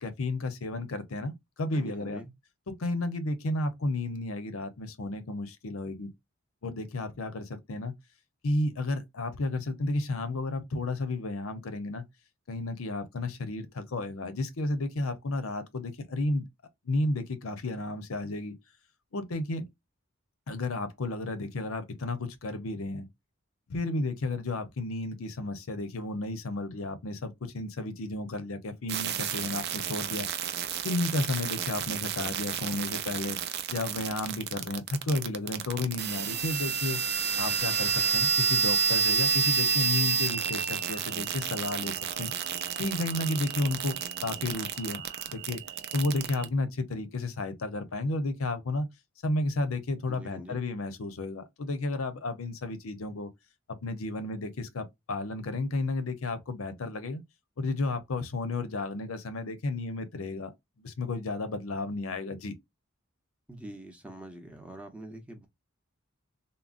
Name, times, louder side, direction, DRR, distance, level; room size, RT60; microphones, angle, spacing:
voice 1, 0.0-1.3 1.6-2.2 2.7-6.1 6.6-7.9 8.4-12.1 12.5-16.5 16.8-18.5 19.1-19.6 20.5-23.1 23.7-30.3 30.8-33.4 33.7-37.0 37.4-42.3 42.8-45.0 45.3-45.6 45.9-48.9 49.2-53.3 53.8-57.2 57.6-60.5 60.8-62.5, left 2 dB, 80° left, 0.6 m, -32 dB
voice 2, 1.7-2.3 50.1-50.6 63.5-65.5, right 1 dB, 5° right, 0.6 m, -45 dB
sound 1, 28.9-46.5, right 7 dB, 50° right, 0.4 m, -30 dB
3.7 x 2.0 x 2.4 m
head